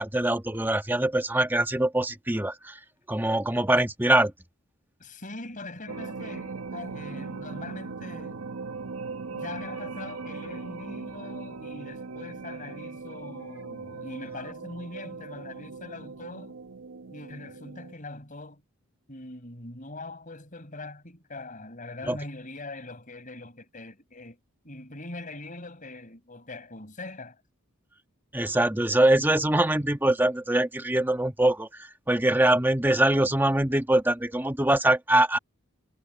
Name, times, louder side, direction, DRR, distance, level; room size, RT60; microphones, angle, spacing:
voice 1, 0.0-2.8 3.1-4.3 22.1-22.2 28.3-35.4, right 1 dB, 10° right, 1.3 m, -23 dB
voice 2, 5.0-8.4 9.3-16.5 17.1-18.6 19.1-24.4 24.6-27.4, left 2 dB, 35° left, 5.0 m, -42 dB
sound 1, 5.9-17.9, right 4 dB, 85° right, 0.9 m, -39 dB
head